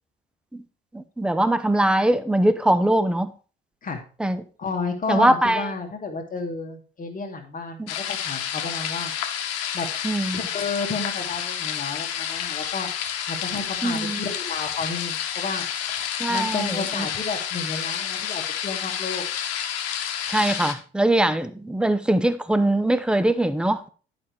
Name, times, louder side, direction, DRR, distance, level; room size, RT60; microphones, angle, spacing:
voice 1, 0.9-3.3 4.2-4.4 5.1-5.7 7.8-7.9 10.0-10.4 13.8-14.2 16.2-17.1 20.3-23.9, right 1 dB, 5° right, 0.7 m, -22 dB
voice 2, 4.6-9.1 9.7-9.9 10.3-12.9 13.3-15.7 16.3-19.2, left 4 dB, 25° left, 1.7 m, -31 dB
sound 1, 7.9-20.7, left 9 dB, 50° left, 1.3 m, -29 dB
11.0 x 5.3 x 4.5 m
figure-of-eight pair, 60°, 31 cm